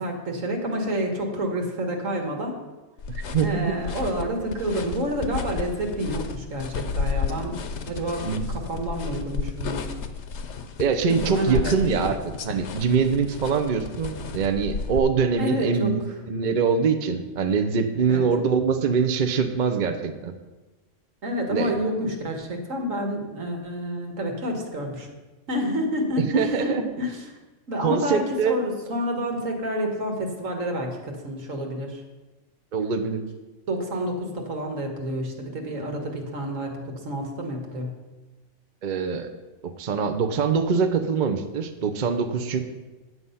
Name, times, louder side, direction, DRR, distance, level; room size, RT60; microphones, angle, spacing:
voice 1, 0.0-2.6 3.4-8.2 8.5-9.9 11.1-11.7 12.0-12.1 15.4-15.9 18.1-18.2 21.2-25.1 25.5-27.2 27.7-32.0 33.7-37.9, equal, 75° right, 2 dB, 1.9 m, -29 dB
sound 1, 3.0-15.0, left 5 dB, 65° left, 1.0 m, -32 dB
voice 2, 3.2-3.8 8.2-8.5 10.8-12.2 12.4-16.0 16.3-20.3 21.5-21.7 26.2-26.8 27.8-28.6 32.7-33.2 38.8-39.3 39.6-42.6, right 6 dB, 45° right, 7 dB, 0.7 m, -23 dB
9.6 x 7.7 x 5.6 m, 1.2 s
omnidirectional pair, 1.4 m